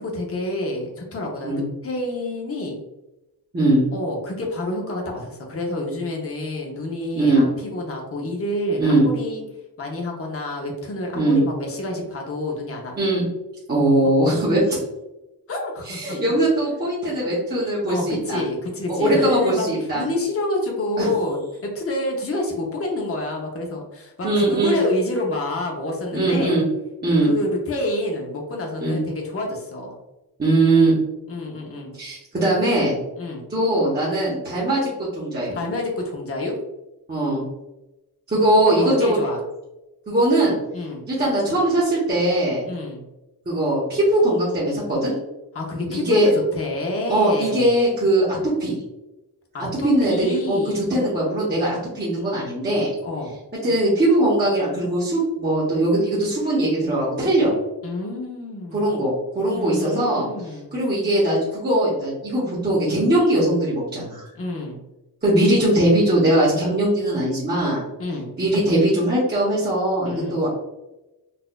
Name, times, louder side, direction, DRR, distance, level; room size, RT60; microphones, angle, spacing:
voice 1, 0.0-2.8 3.9-9.4 9.8-12.9 14.2-14.3 15.5-16.2 17.9-26.6 27.1-30.0 30.8-30.9 31.3-31.9 33.2-33.5 35.5-36.6 38.7-39.4 40.7-41.0 42.6-43.0 45.5-46.2 46.5-47.7 49.5-50.9 53.0-53.4 57.8-59.0 59.5-60.7 64.3-64.8 68.0-68.3 70.0-70.4, left 1 dB, 35° left, 0 dB, 0.7 m, -28 dB
voice 2, 7.1-7.4 8.8-9.0 11.1-11.4 13.0-13.2 13.7-14.8 15.9-18.4 18.9-20.0 21.0-21.1 24.2-24.8 26.1-26.6 27.0-27.3 28.8-29.0 30.4-31.0 32.0-33.0 33.5-34.9 35.2-35.6 37.1-37.4 38.3-39.2 40.1-40.6 41.1-42.6 43.5-45.1 45.9-46.3 47.1-48.8 49.8-52.9 53.6-57.5 58.7-60.3 60.7-64.2 65.2-67.8 68.4-70.5, right 1 dB, 25° right, -8 dB, 0.9 m, -20 dB
4.1 x 2.4 x 2.3 m, 0.98 s
wide cardioid pair, 155°, 41 cm